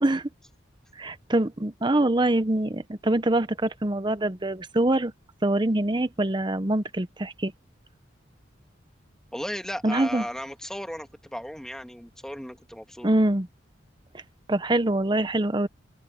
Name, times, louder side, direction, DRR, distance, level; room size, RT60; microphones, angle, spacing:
voice 1, 1.0-5.1 5.4-7.5 9.8-10.2 13.0-13.5 14.5-15.7, right 1 dB, 25° right, 0.8 m, -24 dB
voice 2, 9.3-13.1, equal, 5° left, 1.7 m, -35 dB
head